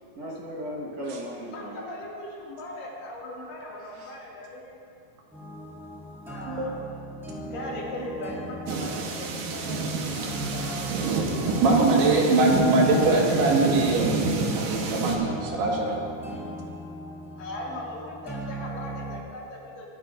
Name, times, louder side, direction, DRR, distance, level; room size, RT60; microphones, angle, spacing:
voice 1, 0.2-1.9 3.8-4.1, equal, 50° right, -4 dB, 2.1 m, -37 dB
voice 2, 1.5-4.8 6.3-6.8 7.3-9.8 10.1-11.8 13.0-13.8 17.4-19.8, left 1 dB, 80° left, -5 dB, 4.4 m, -39 dB
sound 1, 5.3-19.2, right 1 dB, ahead, 1.8 m, -38 dB
sound 2, 8.7-15.2, right 3 dB, 70° right, 2.6 m, -29 dB
voice 3, 11.6-15.9, right 3 dB, 85° right, -2 dB, 3.8 m, -22 dB
23.0 x 11.5 x 2.6 m, 2.5 s
omnidirectional pair, 4.5 m